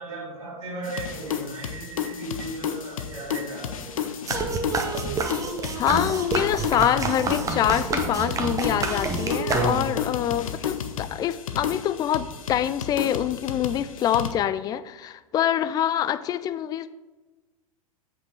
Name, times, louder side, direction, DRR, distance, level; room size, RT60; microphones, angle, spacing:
voice 1, 0.0-4.3, right 2 dB, 65° right, -7 dB, 2.0 m, -37 dB
sound 1, 0.8-14.3, left 8 dB, 65° left, 0.8 m, -32 dB
sound 2, 4.3-10.1, right 3 dB, 20° right, 0.9 m, -28 dB
voice 2, 5.8-16.9, left 10 dB, 20° left, 14 dB, 0.3 m, -25 dB
7.9 x 5.5 x 4.4 m, 1.2 s
figure-of-eight pair, 95°, 18 cm